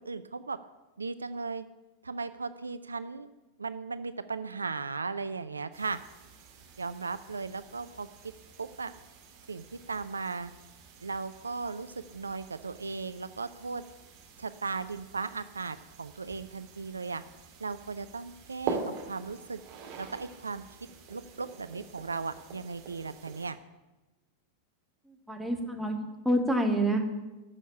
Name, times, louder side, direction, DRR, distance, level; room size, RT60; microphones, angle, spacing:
voice 1, 0.0-0.6 1.0-1.6 2.0-3.3 3.6-6.0 6.8-8.1 8.6-8.9 9.5-10.5 11.0-13.8 14.4-17.2 17.6-18.8 19.1-19.6 20.0-20.6 21.1-23.6, right 4 dB, 75° right, 13 dB, 0.4 m, -36 dB
sound 1, 5.7-23.5, right 5 dB, 45° right, 2.5 m, -45 dB
voice 2, 25.1-27.0, right 1 dB, ahead, 1 dB, 1.8 m, -28 dB
12.0 x 6.4 x 8.8 m, 1.1 s
figure-of-eight pair, 90°, 0 cm